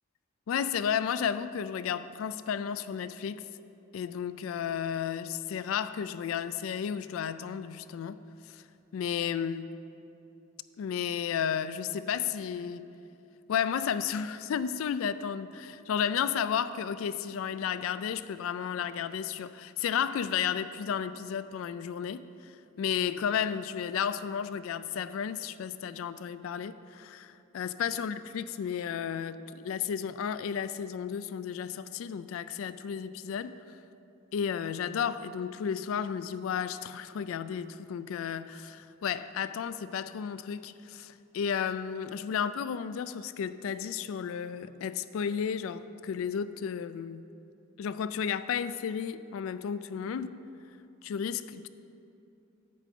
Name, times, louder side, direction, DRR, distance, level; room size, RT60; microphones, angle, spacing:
voice 1, 0.5-3.4 3.9-8.2 8.5-8.6 8.9-9.7 10.8-12.9 13.5-33.5 34.3-47.2 47.8-50.4 51.0-51.7, left 8 dB, 75° left, 14 dB, 0.3 m, -33 dB
8.5 x 5.2 x 7.5 m, 2.8 s
head